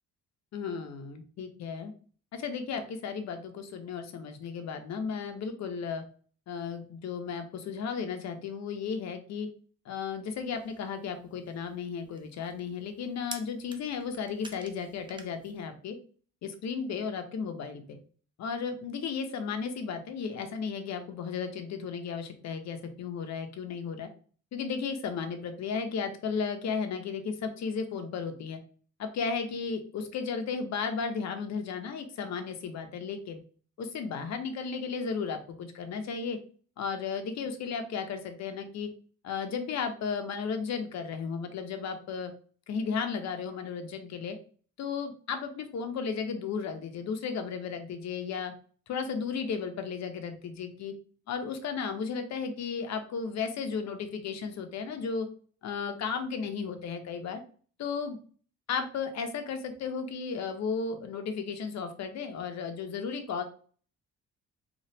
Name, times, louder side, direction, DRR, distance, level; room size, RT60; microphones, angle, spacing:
voice 1, 0.5-1.9 2.3-6.0 6.5-9.5 9.9-16.0 16.4-18.0 18.4-24.1 24.5-28.6 29.0-33.4 33.8-36.4 36.8-38.9 39.2-42.3 42.7-44.4 44.8-48.5 48.9-50.9 51.3-55.3 55.6-57.4 57.8-58.2 58.7-63.4, left 5 dB, 60° left, 7 dB, 0.7 m, -34 dB
sound 1, 10.3-15.6, right 3 dB, 15° right, 0.4 m, -50 dB
3.1 x 2.4 x 2.8 m, 0.43 s
cardioid pair, 90°, 30 cm